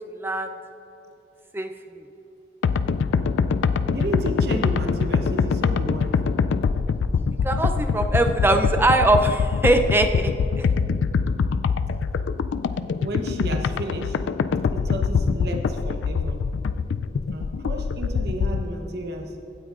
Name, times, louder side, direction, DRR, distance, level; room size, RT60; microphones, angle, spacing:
voice 1, 0.2-0.5 1.5-1.7 7.4-10.3 10.6-10.7, right 2 dB, 10° right, 6 dB, 0.4 m, -21 dB
sound 1, 2.6-18.6, left 5 dB, 90° left, 0.3 m, -24 dB
voice 2, 3.9-6.1 13.0-14.2 14.7-16.4 17.3-19.3, right 1 dB, 60° right, 2 dB, 0.9 m, -32 dB
16.5 x 9.0 x 2.4 m, 2.9 s
head